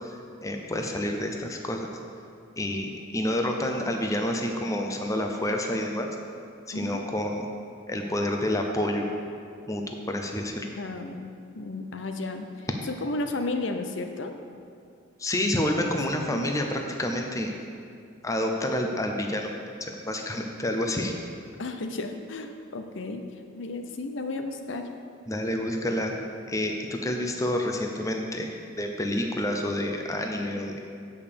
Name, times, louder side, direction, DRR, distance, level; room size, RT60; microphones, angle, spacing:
voice 1, 0.0-1.9 2.6-6.1 6.7-7.5 7.9-9.1 9.7-9.8 10.1-10.7 15.2-17.5 18.2-19.5 19.8-21.1 25.3-26.1 26.5-30.7, left 1 dB, 15° left, 2 dB, 0.6 m, -28 dB
voice 2, 6.7-7.0 10.8-14.3 16.3-16.5 21.6-23.2 23.5-24.9, left 2 dB, 65° left, 6 dB, 0.6 m, -33 dB
8.5 x 5.5 x 6.8 m, 2.4 s
head